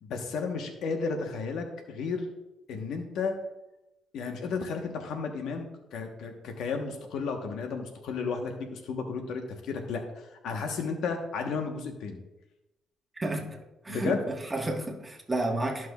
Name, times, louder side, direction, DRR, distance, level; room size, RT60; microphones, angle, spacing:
voice 1, 0.0-2.3 2.7-3.3 4.1-10.0 10.4-12.2 13.9-14.2, left 5 dB, 80° left, 4 dB, 1.1 m, -33 dB
voice 2, 13.1-13.6 13.8-15.9, right 2 dB, 20° right, 1 dB, 1.4 m, -31 dB
13.5 x 6.0 x 2.4 m, 0.96 s
cardioid pair, 90°, 0 cm